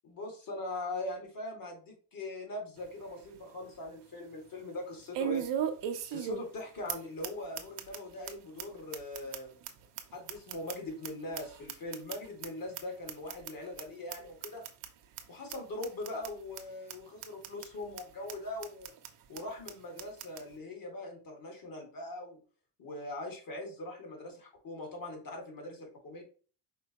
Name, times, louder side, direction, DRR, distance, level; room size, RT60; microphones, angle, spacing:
voice 1, 0.0-5.4 6.1-9.6 10.1-14.6 15.3-18.9 19.3-22.4 22.8-26.2, left 2 dB, 45° left, 1 dB, 2.3 m, -41 dB
sound 1, 2.8-2.9 3.3-3.4 5.1-6.6 6.9-7.0 7.2-7.3 7.6-8.0 8.3-8.4 8.6-8.7 8.9-11.1 11.3-12.5 12.7-12.8 13.1-13.5 13.8-13.9 14.1-14.2 14.4-14.9 15.2-15.3 15.5-15.6 15.8-16.3 16.6-16.7 16.9-17.0 17.2-17.7 18.0-18.1 18.3-18.4 18.6-19.1 19.4-19.5 19.7-19.8 20.0-20.4, right 9 dB, 65° right, 0.9 m, -36 dB
5.1 x 3.3 x 3.0 m, 0.39 s
supercardioid pair, 70°, 45 cm